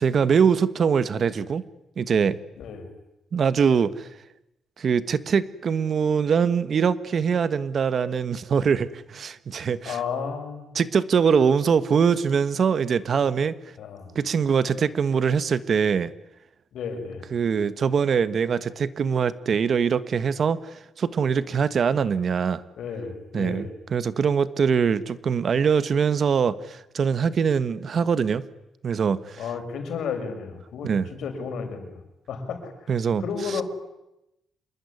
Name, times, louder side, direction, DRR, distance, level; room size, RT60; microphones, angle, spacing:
voice 1, 0.0-1.6 2.0-2.4 3.3-4.1 4.8-10.0 10.7-13.6 14.1-16.1 17.3-22.6 23.3-28.4 28.8-29.4 30.8-31.0 32.9-33.2, right 6 dB, 50° right, 14 dB, 1.4 m, -23 dB
voice 2, 2.6-2.9 9.8-10.8 13.8-14.1 16.7-17.3 22.7-23.7 29.4-32.0 32.3-32.9 33.2-33.6, left 6 dB, 80° left, 6 dB, 6.3 m, -32 dB
27.0 x 21.5 x 9.9 m, 0.90 s
cardioid pair, 130°, 0 cm